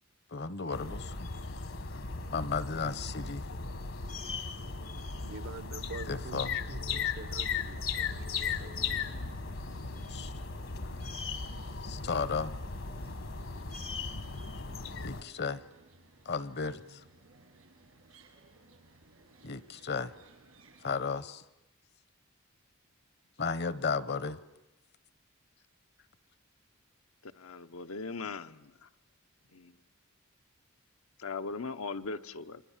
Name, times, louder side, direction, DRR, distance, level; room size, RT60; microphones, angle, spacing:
voice 1, 0.3-1.3 2.3-3.5 6.1-6.6 10.1-10.3 11.8-12.5 15.0-15.6 16.3-17.0 19.4-20.1 20.8-21.4 23.4-24.4, left 5 dB, 50° left, 0.9 m, -34 dB
sound 1, 0.7-15.2, left 5 dB, 65° left, 1.4 m, -37 dB
voice 2, 5.2-8.9, right 3 dB, 65° right, 1.0 m, -46 dB
sound 2, 8.0-21.0, right 1 dB, 85° right, 5.9 m, -56 dB
voice 3, 27.2-28.9 29.5-29.7 31.2-32.6, left 4 dB, 80° left, 0.9 m, -39 dB
29.5 x 24.0 x 7.3 m
head